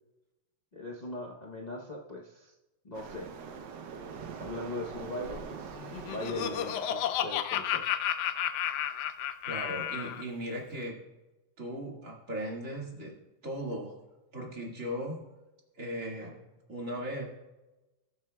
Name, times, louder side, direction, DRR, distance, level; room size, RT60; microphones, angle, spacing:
voice 1, 0.7-2.5 2.8-3.3 4.4-5.8 6.1-7.9, left 1 dB, 65° left, -3 dB, 0.4 m, -40 dB
Waves surf, 2.9-6.9, right 6 dB, 65° right, 1.3 m, -43 dB
Laughter, 5.8-10.2, left 10 dB, 85° left, 0.9 m, -32 dB
voice 2, 9.4-10.9 11.6-13.1 13.4-13.9 14.3-15.2 15.8-17.3, equal, 40° right, -2 dB, 2.3 m, -37 dB
20.0 x 7.3 x 2.3 m, 1.0 s
omnidirectional pair, 2.3 m